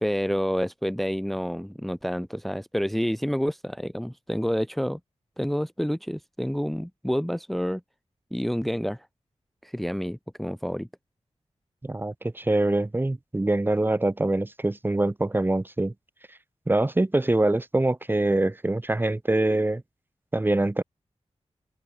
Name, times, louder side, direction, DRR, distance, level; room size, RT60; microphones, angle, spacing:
voice 1, 0.0-5.0 5.4-7.8 8.3-9.1 9.6-10.9, equal, ahead, 1.0 m, -28 dB
voice 2, 11.8-15.9 16.7-19.8 20.3-20.8, right 2 dB, 20° right, 1.2 m, -24 dB
open air
wide cardioid pair, 120°, 11 cm